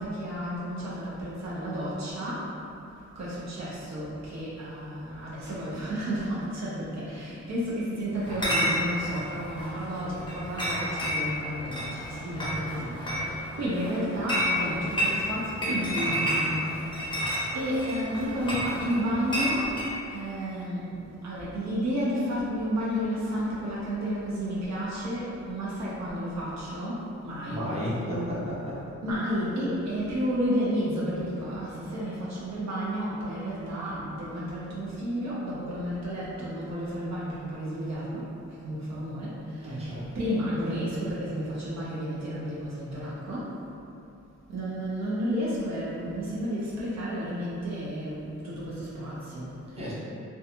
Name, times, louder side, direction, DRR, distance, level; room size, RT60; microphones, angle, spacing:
voice 1, 0.0-2.5 3.2-19.8 20.1-27.7 29.0-38.3 38.6-43.6 44.5-49.9, equal, 60° right, -8 dB, 0.6 m, -32 dB
Chatter / Chink clink, 8.2-19.9, equal, 15° left, 0.7 m, -31 dB
voice 2, 27.5-28.8 39.6-40.0 49.8-49.9, equal, 20° right, -10 dB, 0.7 m, -32 dB
2.5 x 2.3 x 2.8 m, 2.7 s
wide cardioid pair, 115°, 30 cm